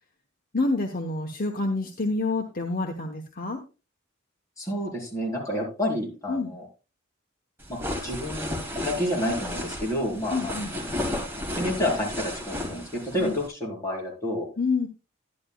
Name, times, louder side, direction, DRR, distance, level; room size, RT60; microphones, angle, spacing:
voice 1, 0.5-3.6 6.3-6.5 10.3-10.7 13.2-13.3 14.6-14.9, left 3 dB, 45° left, 3 dB, 1.0 m, -27 dB
voice 2, 4.6-6.7 7.7-10.6 11.6-14.5, left 1 dB, 15° left, -3 dB, 4.0 m, -29 dB
sound 1, 7.6-13.5, left 1 dB, 10° right, 2.2 m, -33 dB
11.0 x 11.0 x 2.3 m, 0.31 s
head